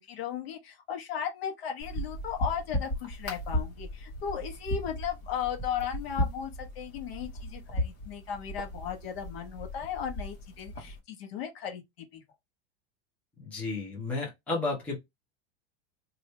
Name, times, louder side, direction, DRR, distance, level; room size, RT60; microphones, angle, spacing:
voice 1, 0.1-11.8 12.1-12.2, left 8 dB, 55° left, 1.2 m, -36 dB
sound 1, 1.8-11.0, left 1 dB, 35° left, 1.4 m, -36 dB
voice 2, 13.4-15.0, left 3 dB, 5° left, 0.8 m, -32 dB
3.0 x 2.7 x 3.2 m
supercardioid pair, 175°, 36 cm